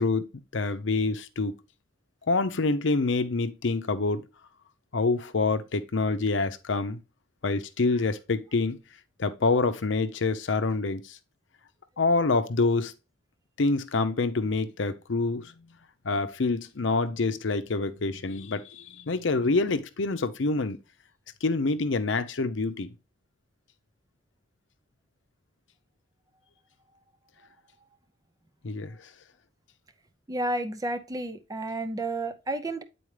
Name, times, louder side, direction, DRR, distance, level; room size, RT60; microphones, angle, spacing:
voice 1, 0.0-1.6 2.3-4.3 4.9-7.0 7.4-8.8 9.2-11.2 12.0-12.9 13.6-15.5 16.0-20.8 21.4-22.9 28.6-29.0, left 3 dB, 70° left, 0.7 m, -26 dB
voice 2, 30.3-32.8, right 2 dB, 20° right, 0.5 m, -31 dB
8.7 x 4.3 x 3.2 m
head